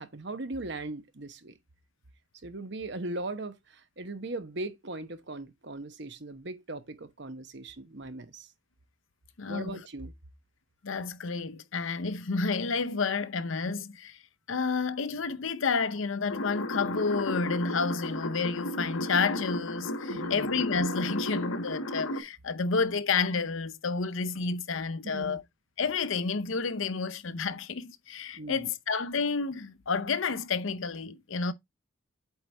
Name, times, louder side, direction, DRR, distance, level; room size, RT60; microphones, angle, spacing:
voice 1, 0.0-1.5 2.4-8.5 9.5-10.1 20.1-20.5 25.0-25.4 28.3-28.7, right 2 dB, 55° right, 1.0 m, -39 dB
voice 2, 9.4-9.8 10.8-14.2 14.5-25.4 25.8-31.5, left 4 dB, 70° left, 0.7 m, -30 dB
sound 1, 16.3-22.2, left 1 dB, 90° left, 1.4 m, -34 dB
8.1 x 4.6 x 3.3 m
head